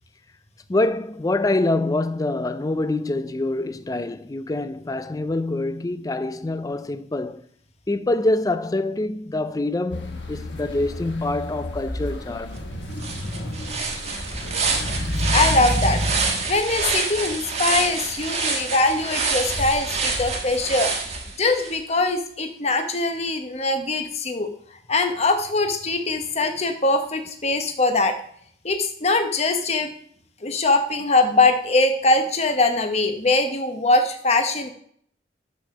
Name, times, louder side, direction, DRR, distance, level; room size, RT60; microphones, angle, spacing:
voice 1, 0.7-7.4 7.9-12.6, left 2 dB, 20° left, 0.4 m, -25 dB
sound 1, 9.9-16.3, left 1 dB, 70° left, 1.3 m, -31 dB
voice 2, 12.6-13.6 14.6-20.9 21.4-24.5 24.9-28.2 28.6-29.9 30.4-34.7, left 2 dB, 35° left, 1.0 m, -22 dB
sound 2, 12.6-12.7 13.0-21.7, right 4 dB, 35° right, 1.4 m, -27 dB
6.7 x 6.2 x 6.3 m
head